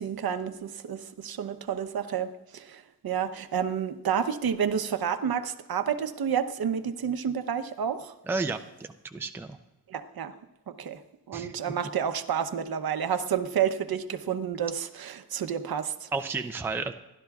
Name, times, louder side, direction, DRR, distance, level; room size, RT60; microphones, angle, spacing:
voice 1, 0.0-8.1 9.9-10.3 10.7-11.0 11.3-16.1, right 8 dB, 65° right, 10 dB, 0.8 m, -30 dB
voice 2, 8.3-9.6 11.3-11.5 16.1-16.9, right 3 dB, 5° right, 6 dB, 0.4 m, -32 dB
28.0 x 12.0 x 2.4 m, 0.97 s
wide cardioid pair, 175°, 40 cm